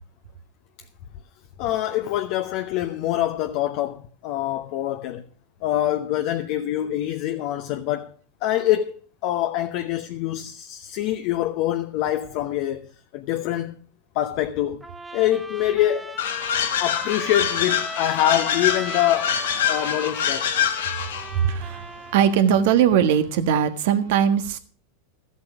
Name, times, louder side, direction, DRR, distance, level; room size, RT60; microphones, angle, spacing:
voice 1, 1.6-5.2 5.6-8.1 8.4-12.9 13.1-13.8 14.1-14.8 15.1-16.2 16.8-19.4 19.7-20.5, left 13 dB, 55° left, 0.9 m, -25 dB
Trumpet, 14.8-22.4, right 2 dB, 5° right, 1.3 m, -37 dB
sound 1, 16.2-21.3, left 9 dB, 75° left, 1.3 m, -25 dB
voice 2, 21.4-21.8 22.1-24.6, right 8 dB, 65° right, 1.4 m, -20 dB
13.5 x 8.2 x 6.2 m
hypercardioid pair, 100°, 0 cm